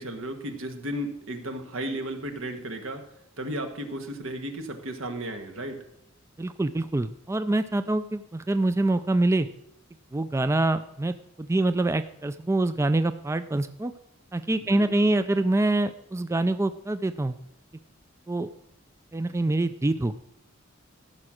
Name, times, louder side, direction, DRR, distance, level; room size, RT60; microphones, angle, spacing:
voice 1, 0.0-3.0 3.4-5.8 14.6-15.1, right 1 dB, 85° right, 6 dB, 1.6 m, -34 dB
voice 2, 6.4-9.5 10.1-13.9 14.3-17.4 18.3-18.5 19.1-20.1, right 2 dB, 15° right, 11 dB, 0.4 m, -25 dB
14.0 x 6.0 x 6.3 m, 0.78 s
head